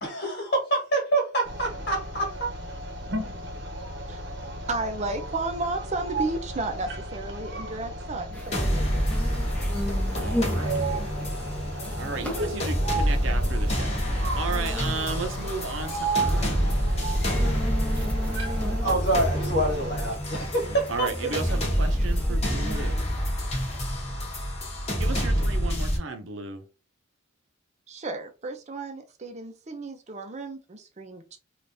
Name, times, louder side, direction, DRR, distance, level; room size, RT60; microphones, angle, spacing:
voice 1, 0.0-2.5 18.7-21.3, right 2 dB, 55° left, 1.4 m, -26 dB
sound 1, 1.4-20.2, right 2 dB, 60° right, 0.9 m, -34 dB
voice 2, 4.7-9.1 9.4-9.5 27.9-31.4, right 2 dB, 35° right, 0.6 m, -33 dB
sound 2, 8.3-23.3, left 1 dB, 5° left, 0.6 m, -38 dB
sound 3, 8.5-26.0, equal, 35° left, 1.0 m, -27 dB
voice 3, 10.1-10.8 12.0-16.7 20.7-23.0 25.0-26.6, right 4 dB, 90° right, 0.6 m, -34 dB
3.3 x 2.5 x 2.6 m
head